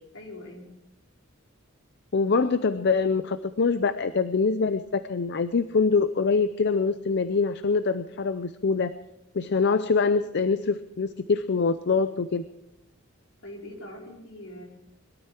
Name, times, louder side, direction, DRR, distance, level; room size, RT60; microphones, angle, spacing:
voice 1, 0.1-0.7 13.4-14.6, left 1 dB, 75° left, -2 dB, 4.7 m, -42 dB
voice 2, 2.1-8.9 9.3-12.4, left 4 dB, 55° left, 12 dB, 0.6 m, -24 dB
22.0 x 13.0 x 4.5 m, 0.88 s
head